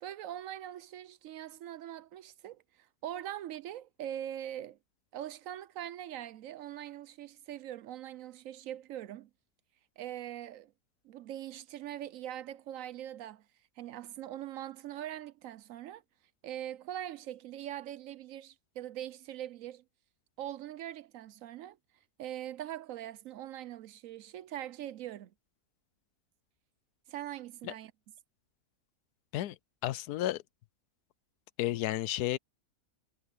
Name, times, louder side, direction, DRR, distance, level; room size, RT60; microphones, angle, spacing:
voice 1, 0.0-4.8 5.1-9.3 10.0-10.7 11.0-13.5 13.8-16.0 16.4-19.8 20.4-21.8 22.2-25.3 27.1-27.9, right 12 dB, 70° right, 0.9 m, -42 dB
voice 2, 29.3-30.4 31.6-32.4, left 14 dB, 90° left, 1.1 m, -32 dB
omnidirectional pair, 1.6 m